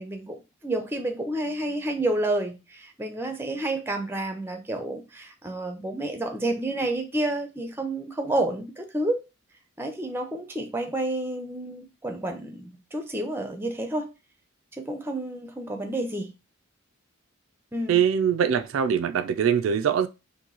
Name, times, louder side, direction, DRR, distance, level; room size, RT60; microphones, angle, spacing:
voice 1, 0.0-9.2 9.8-14.1 14.8-16.3 17.7-18.0, right 1 dB, 10° right, 0.5 m, -30 dB
voice 2, 17.9-20.1, right 8 dB, 75° right, 0.3 m, -23 dB
2.9 x 2.6 x 3.8 m
head